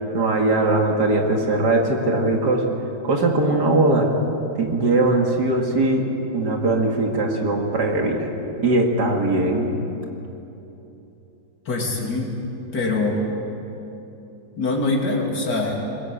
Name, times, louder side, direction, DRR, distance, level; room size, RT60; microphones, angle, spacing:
voice 1, 0.1-2.6 3.0-4.1 4.6-6.1 6.3-8.3 8.6-9.7, right 2 dB, 75° right, 1 dB, 2.7 m, -20 dB
voice 2, 11.7-12.3 12.7-13.2 14.6-15.8, left 2 dB, 75° left, -1 dB, 3.5 m, -23 dB
21.5 x 21.0 x 8.6 m, 3.0 s
omnidirectional pair, 1.8 m